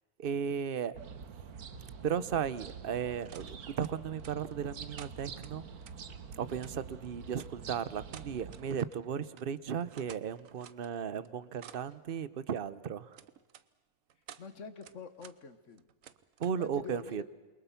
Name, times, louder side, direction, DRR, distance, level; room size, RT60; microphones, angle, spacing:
voice 1, 0.2-0.9 2.0-5.6 6.3-13.2 16.4-17.2, right 7 dB, 45° right, 16 dB, 0.9 m, -35 dB
sound 1, 0.9-8.7, right 6 dB, 85° right, 1.7 m, -47 dB
sound 2, 3.3-3.5 3.8-4.6 5.0-6.0 6.6-6.7 7.3-7.5 8.1-9.1 9.3-9.5 9.8-10.9 11.3-12.0 13.1-13.6 14.1-14.5 14.8-15.4 15.7-16.6, right 9 dB, 65° right, 1.3 m, -53 dB
voice 2, 14.4-15.9 16.6-17.2, left 5 dB, 55° left, 12 dB, 1.8 m, -46 dB
28.5 x 23.0 x 5.8 m, 1.3 s
omnidirectional pair, 1.5 m